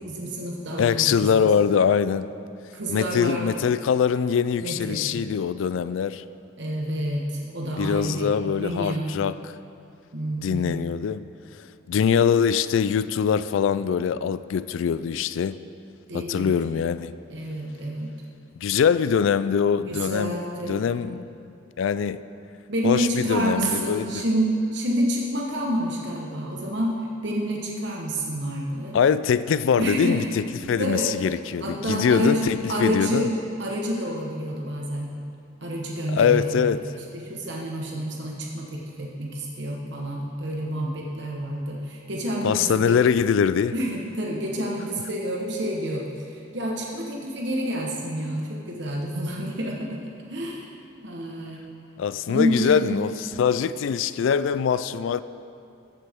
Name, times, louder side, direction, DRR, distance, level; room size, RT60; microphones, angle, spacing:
voice 1, 0.0-1.5 2.7-3.5 4.6-5.1 6.6-9.1 10.1-10.8 16.1-16.5 17.3-18.1 19.9-20.9 22.7-26.9 27.2-28.9 29.8-30.3 30.8-31.1 31.6-33.2 33.6-35.1 35.6-36.7 36.9-43.0 43.7-46.0 46.5-50.0 50.3-50.7 51.0-51.6 52.3-53.0, equal, 60° right, -2 dB, 1.2 m, -28 dB
voice 2, 0.8-2.3 2.9-6.2 7.8-9.5 10.4-11.3 11.9-15.6 16.1-17.1 18.6-20.4 20.7-21.3 21.8-22.2 22.8-24.2 28.9-33.3 36.1-36.8 42.4-43.7 52.0-55.2, left 7 dB, 75° left, 15 dB, 0.3 m, -23 dB
14.5 x 7.5 x 3.6 m, 2.5 s
head